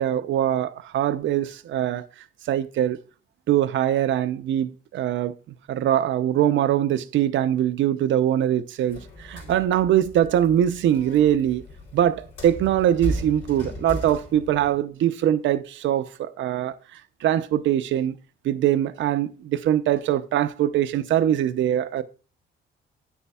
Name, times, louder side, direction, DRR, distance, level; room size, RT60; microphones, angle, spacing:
voice 1, 0.0-2.1 2.5-3.0 3.5-11.6 11.9-18.1 18.4-22.0, right 11 dB, 70° right, 0.6 m, -22 dB
sound 1, 8.9-14.7, equal, 75° left, 3.8 m, -36 dB
8.8 x 6.9 x 2.3 m
cardioid pair, 90°, 20 cm